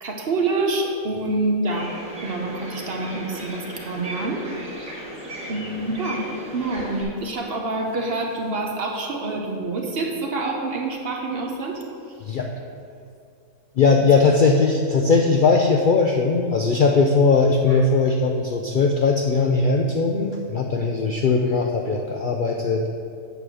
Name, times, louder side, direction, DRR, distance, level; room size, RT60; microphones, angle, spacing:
voice 1, 0.0-1.9 2.2-4.4 5.5-6.2 6.5-11.8 17.7-17.8, right 2 dB, 50° right, 1 dB, 1.0 m, -26 dB
sound 1, 1.6-7.0, right 1 dB, 65° right, 2.5 m, -36 dB
voice 2, 13.8-22.8, left 4 dB, 90° left, 2 dB, 0.4 m, -19 dB
8.1 x 4.8 x 6.2 m, 2.5 s
omnidirectional pair, 1.5 m